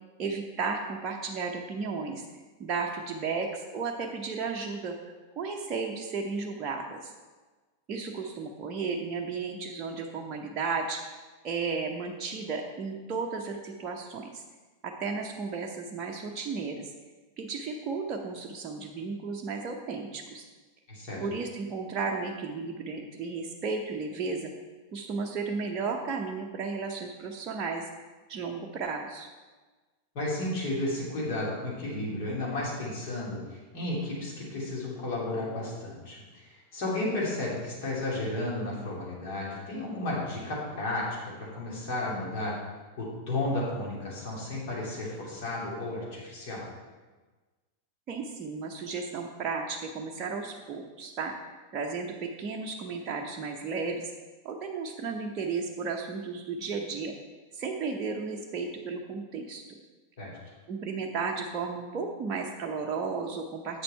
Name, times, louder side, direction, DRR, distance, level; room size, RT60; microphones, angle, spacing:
voice 1, 0.2-2.2 2.6-5.0 5.4-7.1 7.9-11.0 11.4-14.4 14.8-16.9 17.4-20.5 21.2-24.5 24.9-27.9 28.3-29.3 48.1-51.3 51.7-54.1 54.4-57.1 57.5-59.8 60.7-63.8, right 4 dB, 30° right, 1 dB, 0.7 m, -34 dB
voice 2, 20.9-21.2 30.1-42.6 43.0-46.7 60.2-60.3, left 2 dB, 45° left, -5 dB, 2.9 m, -33 dB
7.9 x 6.8 x 4.5 m, 1.3 s
figure-of-eight pair, 90°, 0 cm